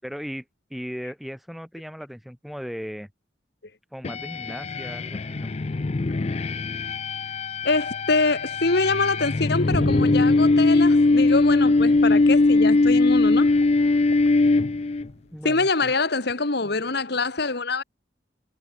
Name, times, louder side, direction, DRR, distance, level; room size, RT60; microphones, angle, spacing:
voice 1, 0.0-0.4 0.7-3.1 3.9-5.5 15.3-15.9, equal, ahead, 4.0 m, -37 dB
sound 1, 4.0-15.1, left 3 dB, 35° left, 0.5 m, -21 dB
voice 2, 7.6-13.5 15.4-17.8, left 3 dB, 60° left, 1.8 m, -24 dB
sound 2, 9.7-15.5 15.9-16.0, right 1 dB, 55° right, 3.6 m, -39 dB
head